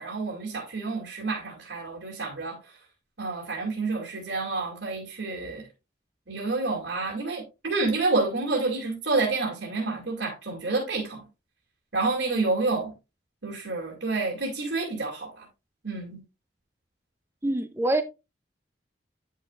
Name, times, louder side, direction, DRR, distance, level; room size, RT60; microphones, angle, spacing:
voice 1, 0.0-2.7 3.2-5.7 6.3-11.2 11.9-12.9 13.4-15.5 15.8-16.2, right 3 dB, 85° right, 2.6 m, -29 dB
voice 2, 17.4-18.0, right 1 dB, 15° right, 0.5 m, -25 dB
9.9 x 6.6 x 2.4 m
head